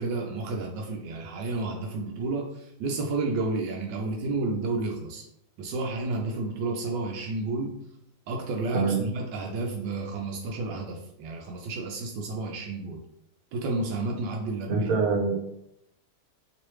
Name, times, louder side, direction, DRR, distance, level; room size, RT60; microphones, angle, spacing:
voice 1, 0.0-5.2 5.6-7.7 8.3-13.0 13.5-14.9, right 3 dB, 85° right, 0 dB, 1.2 m, -31 dB
voice 2, 14.7-15.3, right 4 dB, 60° right, -1 dB, 1.3 m, -24 dB
3.2 x 3.1 x 3.0 m, 0.80 s
omnidirectional pair, 1.9 m